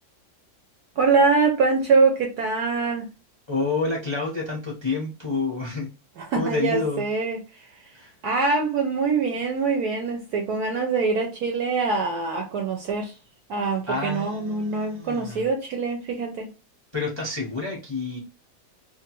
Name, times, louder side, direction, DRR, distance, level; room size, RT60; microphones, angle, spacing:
voice 1, 1.0-3.1 6.2-7.7 8.2-13.1 13.5-16.5, right 4 dB, 70° right, 1.0 m, -24 dB
voice 2, 3.5-5.9 6.3-7.0 7.9-8.1 13.9-15.5 16.9-18.2, left 3 dB, 45° left, 0.3 m, -29 dB
2.9 x 2.4 x 2.9 m
omnidirectional pair, 2.0 m